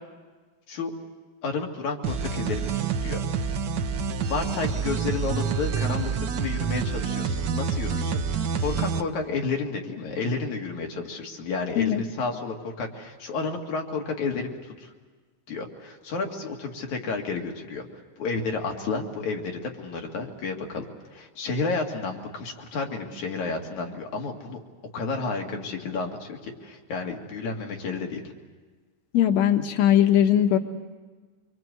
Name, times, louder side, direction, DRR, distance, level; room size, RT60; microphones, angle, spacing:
voice 1, 1.4-3.2 4.3-14.9 15.5-17.9 18.2-24.6 24.9-28.2, left 4 dB, 80° left, 2 dB, 3.6 m, -31 dB
sound 1, 2.0-9.0, right 6 dB, 85° right, 0.9 m, -27 dB
voice 2, 29.1-30.6, left 11 dB, 65° left, 6 dB, 2.4 m, -20 dB
25.0 x 24.5 x 7.9 m, 1.4 s
omnidirectional pair, 3.3 m